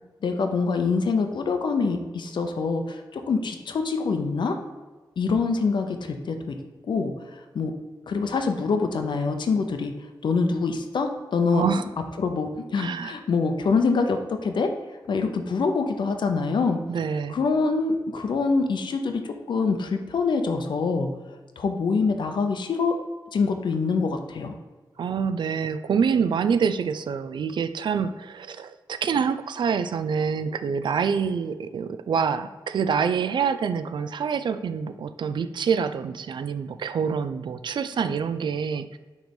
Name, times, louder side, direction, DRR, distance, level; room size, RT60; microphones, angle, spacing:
voice 1, 0.2-4.6 5.2-6.6 6.9-7.7 8.1-9.9 10.2-11.6 12.2-14.7 15.1-16.8 17.3-21.1 21.6-23.0 23.3-24.5, left 4 dB, 80° left, 6 dB, 0.6 m, -25 dB
voice 2, 11.5-11.9 12.8-13.1 16.9-17.4 25.0-39.0, right 6 dB, 75° right, 12 dB, 0.4 m, -26 dB
6.3 x 3.3 x 5.2 m, 1.3 s
wide cardioid pair, 150°, 8 cm